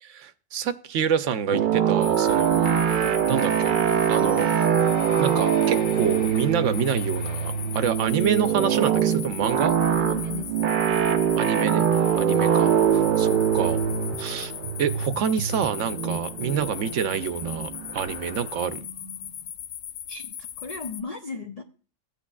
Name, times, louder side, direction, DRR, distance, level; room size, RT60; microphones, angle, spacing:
voice 1, 0.0-2.8 3.3-3.7 4.1-4.5 5.2-9.7 11.4-11.9 12.2-13.8 14.2-14.5 14.8-18.8, right 7 dB, 75° right, 0.9 m, -27 dB
sound 1, 1.5-18.0, right 8 dB, 55° right, 0.5 m, -23 dB
sound 2, 2.0-21.0, left 10 dB, 70° left, 0.9 m, -38 dB
sound 3, 2.3-19.5, left 2 dB, 90° left, 2.6 m, -44 dB
voice 2, 10.0-10.6 12.2-12.5 16.0-16.2 20.1-21.6, left 4 dB, 55° left, 0.4 m, -37 dB
14.5 x 8.5 x 2.3 m
omnidirectional pair, 1.3 m